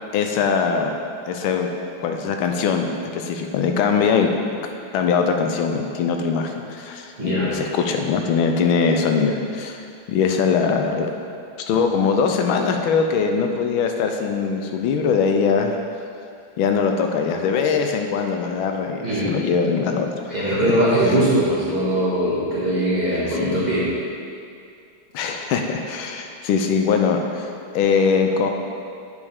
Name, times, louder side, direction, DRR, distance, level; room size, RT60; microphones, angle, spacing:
voice 1, 0.1-0.9 1.3-1.7 2.0-2.9 3.1-4.3 4.9-9.8 10.1-11.1 11.6-15.7 16.6-20.8 21.1-21.2 23.2-23.6 25.1-28.5, left 5 dB, 85° left, 4 dB, 1.4 m, -22 dB
voice 2, 7.2-7.5 19.0-19.3 20.3-23.9, right 1 dB, 20° right, -11 dB, 1.7 m, -21 dB
8.2 x 5.3 x 3.5 m, 2.4 s
omnidirectional pair, 2.2 m